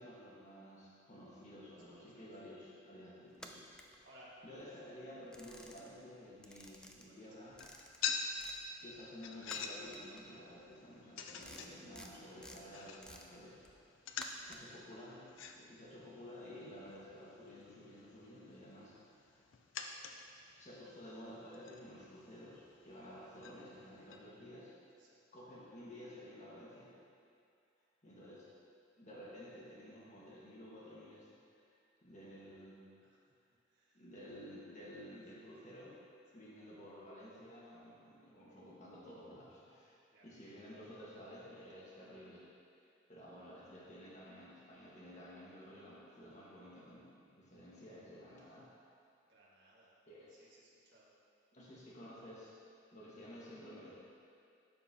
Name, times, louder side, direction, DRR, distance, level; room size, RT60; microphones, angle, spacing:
voice 1, 0.0-4.0 4.4-7.6 8.8-13.6 14.4-19.0 20.6-24.7 25.3-26.9 28.0-28.5 29.0-31.7 32.0-32.9 33.9-36.0 36.3-42.5 43.1-48.7 50.1-50.4 51.5-52.6 52.9-53.9, equal, 40° left, -6 dB, 1.5 m, -53 dB
voice 2, 1.6-2.3 3.6-4.3 7.1-7.2 14.1-14.3 24.9-25.2 33.0-33.3 33.7-34.0 36.3-36.5 40.1-40.3 49.3-49.9 50.3-51.1, right 1 dB, 65° right, -6 dB, 1.5 m, -64 dB
sound 1, 3.3-4.6 5.0-6.1 6.4-8.6 8.9-14.8, left 1 dB, 5° left, 0.3 m, -55 dB
sound 2, 7.4-24.2, left 5 dB, 80° left, 0.5 m, -47 dB
12.5 x 4.3 x 2.8 m, 2.4 s
head